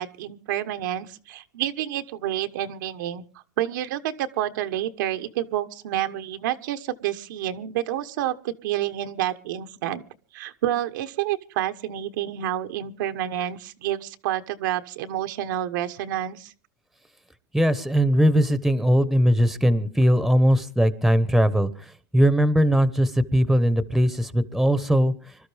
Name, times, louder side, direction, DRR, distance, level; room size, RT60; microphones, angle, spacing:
voice 1, 0.0-3.2 3.6-10.0 10.3-16.5, right 12 dB, 80° right, 8 dB, 1.2 m, -29 dB
voice 2, 17.5-21.7 22.1-25.1, equal, ahead, 14 dB, 1.1 m, -20 dB
25.5 x 13.0 x 3.5 m, 0.39 s
supercardioid pair, 125°, 10 cm